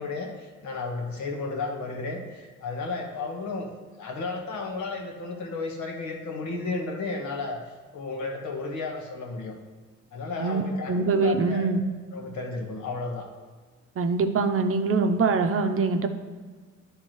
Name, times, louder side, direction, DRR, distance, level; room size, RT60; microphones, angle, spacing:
voice 1, 0.0-3.7 4.0-7.6 7.9-9.5 10.1-11.7 12.1-13.3, left 3 dB, 75° left, 1 dB, 1.4 m, -33 dB
voice 2, 10.9-11.8 14.0-16.1, right 4 dB, 45° right, 6 dB, 0.7 m, -23 dB
10.5 x 3.6 x 4.6 m, 1.4 s
cardioid pair, 90°, 30 cm